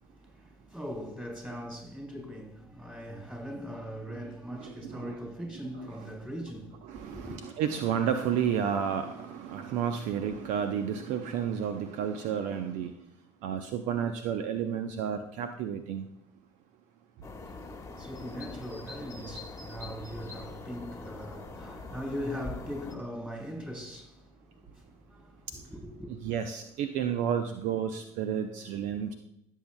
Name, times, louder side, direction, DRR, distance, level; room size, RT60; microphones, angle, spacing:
voice 1, 0.0-7.4 17.5-26.1, equal, 10° right, 3.8 m, -41 dB
voice 2, 4.5-5.2 6.8-12.9 13.4-16.0 26.2-29.1, right 8 dB, 55° right, 0.7 m, -31 dB
sound 1, 17.2-23.0, left 3 dB, 20° left, 1.4 m, -43 dB
15.5 x 7.4 x 2.2 m
hypercardioid pair, 65°, 15 cm